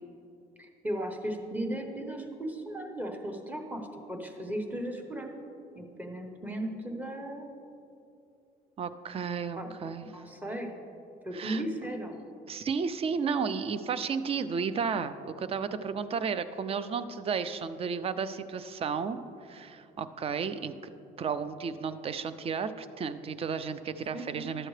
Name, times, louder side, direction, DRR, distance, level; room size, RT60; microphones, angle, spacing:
voice 1, 0.6-5.3 5.7-7.5 9.6-9.7 10.0-10.7 11.2-12.2 24.1-24.5, right 1 dB, 10° right, 4 dB, 0.9 m, -36 dB
voice 2, 8.8-10.2 11.3-11.6 12.5-20.9 21.2-24.7, right 6 dB, 35° right, 13 dB, 0.4 m, -33 dB
12.0 x 7.5 x 3.2 m, 2.7 s
cardioid pair, 110°, 17 cm